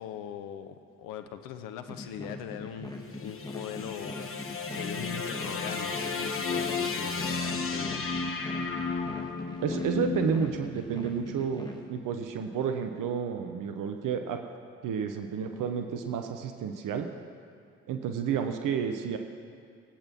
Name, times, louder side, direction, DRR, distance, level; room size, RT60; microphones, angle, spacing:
voice 1, 0.0-8.1, left 9 dB, 75° left, 9 dB, 1.0 m, -41 dB
sound 1, 1.9-11.8, left 2 dB, 10° left, 2.4 m, -42 dB
sound 2, 2.9-11.3, left 4 dB, 40° left, 1.5 m, -34 dB
voice 2, 9.6-14.4 14.8-17.1 17.9-19.2, right 7 dB, 65° right, 6 dB, 1.1 m, -31 dB
18.5 x 9.0 x 6.0 m, 2.3 s
hypercardioid pair, 40°, 34 cm